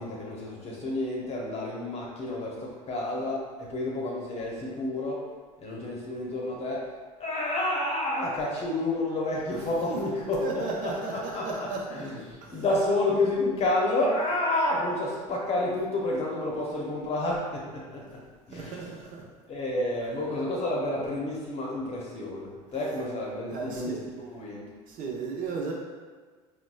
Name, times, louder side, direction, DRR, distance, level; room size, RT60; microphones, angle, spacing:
voice 1, 0.0-5.3 5.6-6.9 7.2-11.5 11.9-18.1 18.5-18.9 19.5-24.7, left 2 dB, 35° left, -3 dB, 0.8 m, -30 dB
voice 2, 10.4-12.1 12.4-12.6 18.5-19.3 23.5-24.1 24.9-25.7, right 4 dB, 50° right, -2 dB, 0.8 m, -35 dB
4.0 x 2.2 x 2.3 m, 1.4 s
hypercardioid pair, 75°, 18 cm